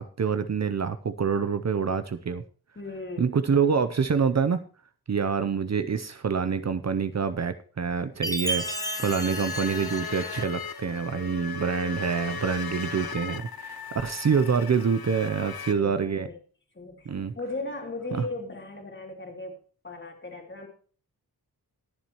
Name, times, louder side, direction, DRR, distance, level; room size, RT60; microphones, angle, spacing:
voice 1, 0.0-2.4 3.2-4.6 5.1-16.3 17.1-17.3 18.1-18.2, right 6 dB, 45° right, 10 dB, 0.7 m, -26 dB
voice 2, 2.7-3.3 15.4-16.4 16.7-20.7, left 2 dB, 30° left, 2 dB, 2.9 m, -38 dB
Chime, 8.2-10.7, right 1 dB, 10° left, 1.0 m, -33 dB
sound 1, 8.5-15.7, left 5 dB, 70° left, 1.0 m, -37 dB
21.5 x 7.3 x 3.0 m, 0.42 s
wide cardioid pair, 125°, 37 cm